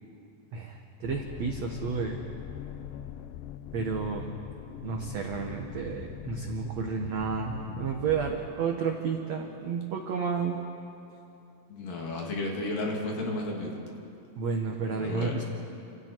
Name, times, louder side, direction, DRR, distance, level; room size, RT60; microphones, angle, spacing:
voice 1, 0.5-2.2 3.7-4.2 4.8-10.6 14.4-15.4, right 5 dB, 70° right, 2 dB, 1.7 m, -31 dB
sound 1, 1.0-8.5, left 11 dB, 80° left, 2.1 m, -41 dB
voice 2, 11.7-13.8 14.9-15.4, left 2 dB, 55° left, -1 dB, 4.0 m, -33 dB
30.0 x 27.0 x 4.6 m, 2.7 s
omnidirectional pair, 4.8 m